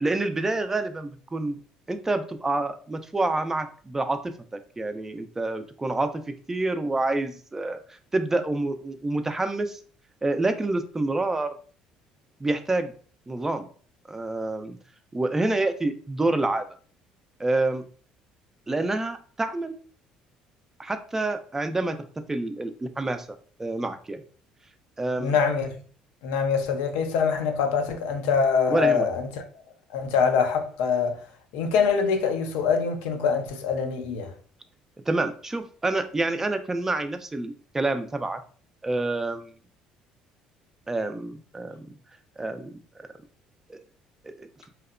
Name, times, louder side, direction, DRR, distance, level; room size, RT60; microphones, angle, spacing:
voice 1, 0.0-1.6 1.9-4.2 4.8-6.2 6.5-7.8 8.1-9.8 10.2-11.5 12.4-12.9 13.3-13.7 14.1-14.8 15.1-16.7 17.4-17.8 18.7-19.8 20.8-22.0 22.3-23.3 23.6-24.2 25.0-25.4 28.7-29.1 35.1-38.4 38.8-39.5 40.9-41.9 42.4-43.1 43.7-43.8 44.2-44.5, right 2 dB, 15° right, 0.3 m, -27 dB
voice 2, 25.2-25.7 26.2-29.4 29.9-31.2 31.5-34.3, left 6 dB, 85° left, 0.4 m, -24 dB
2.8 x 2.0 x 2.4 m
supercardioid pair, 85°, 3 cm